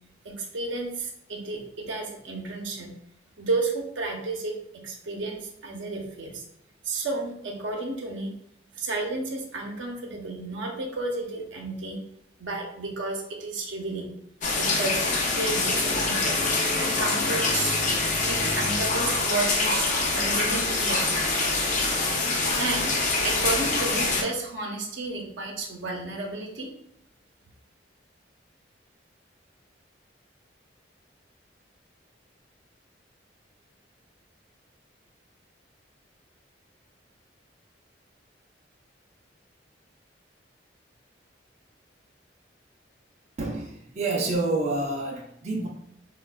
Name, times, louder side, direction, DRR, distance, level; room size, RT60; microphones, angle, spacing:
voice 1, 0.2-2.9 3.4-6.4 6.8-8.3 8.7-12.0 12.4-14.1 14.6-16.4 16.8-17.8 18.3-21.0 22.6-22.9 23.2-26.7, right 3 dB, 80° right, 1 dB, 0.6 m, -32 dB
sound 1, 14.4-24.2, left 3 dB, 40° left, 0.4 m, -25 dB
voice 2, 43.4-45.7, right 2 dB, 35° right, -2 dB, 0.4 m, -28 dB
4.0 x 2.2 x 2.2 m, 0.73 s
head